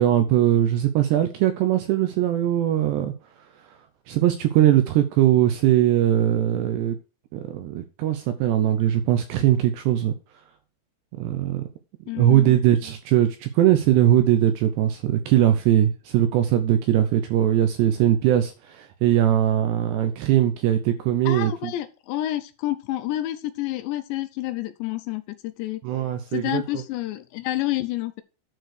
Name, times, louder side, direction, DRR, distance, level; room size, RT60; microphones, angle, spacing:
voice 1, 0.0-3.1 4.1-7.0 7.3-10.1 11.2-11.6 12.2-21.7 25.8-26.6, right 12 dB, 90° right, 2.4 m, -20 dB
voice 2, 12.1-12.6 21.3-25.8 26.3-28.2, left 14 dB, 85° left, 2.6 m, -29 dB
10.5 x 4.7 x 6.4 m
omnidirectional pair, 5.8 m